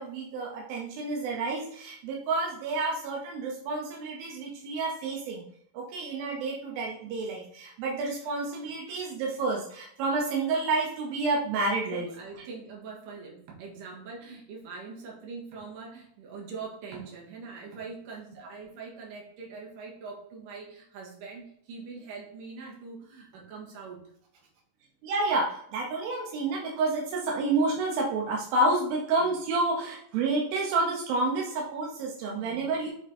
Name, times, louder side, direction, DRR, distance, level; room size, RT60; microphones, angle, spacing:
voice 1, 0.0-5.5 5.7-12.1 25.0-32.9, right 3 dB, 85° right, -1 dB, 2.8 m, -29 dB
voice 2, 11.9-24.1 29.2-29.3 32.3-32.7, right 4 dB, 70° right, -2 dB, 3.2 m, -43 dB
7.8 x 3.6 x 4.2 m, 0.68 s
omnidirectional pair, 4.1 m